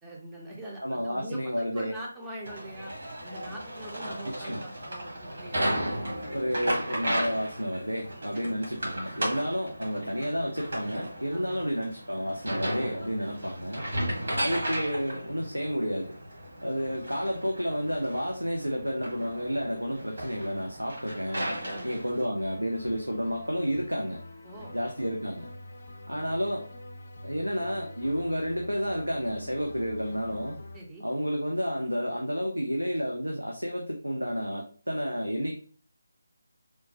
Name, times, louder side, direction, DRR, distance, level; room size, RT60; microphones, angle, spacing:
voice 1, 0.0-2.9 3.2-6.0 8.3-8.5 9.1-9.2 11.3-11.6 13.4-14.2 21.6-21.9 24.4-24.7 30.7-31.1, right 1 dB, 5° right, -4 dB, 0.6 m, -43 dB
voice 2, 0.8-1.9 4.2-4.6 6.3-13.8 14.3-16.2 16.6-21.5 21.8-24.2 24.7-25.5 26.1-26.6 27.2-30.5 31.0-35.5, equal, 90° right, 1 dB, 0.5 m, -31 dB
sound 1, 2.4-22.3, right 1 dB, 55° right, 1.2 m, -35 dB
sound 2, 22.3-30.8, left 1 dB, 45° left, 0.4 m, -46 dB
3.1 x 2.1 x 2.7 m, 0.42 s
figure-of-eight pair, 155°, 0 cm